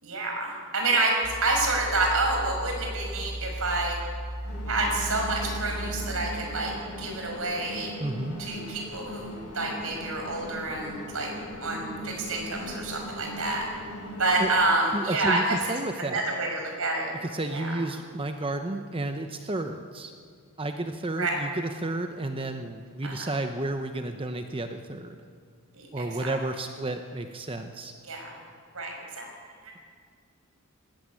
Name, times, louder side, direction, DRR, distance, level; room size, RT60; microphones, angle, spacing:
voice 1, 0.0-4.0 4.7-7.9 8.4-11.3 11.6-13.7 14.2-15.6 16.0-17.1 17.5-17.7 21.2-21.4 23.0-23.3 25.7-26.3 28.1-28.4 28.7-29.3, right 2 dB, 65° right, 1 dB, 5.8 m, -28 dB
sound 1, 1.2-6.4, equal, 35° left, 4.6 m, -36 dB
sound 2, 4.4-14.7, equal, 80° left, 6.1 m, -39 dB
voice 2, 8.0-8.4 14.4-14.5 14.9-16.2 17.2-20.1 20.6-25.2 25.9-27.9, right 2 dB, 25° right, 6 dB, 0.9 m, -32 dB
20.0 x 16.5 x 9.7 m, 2.1 s
head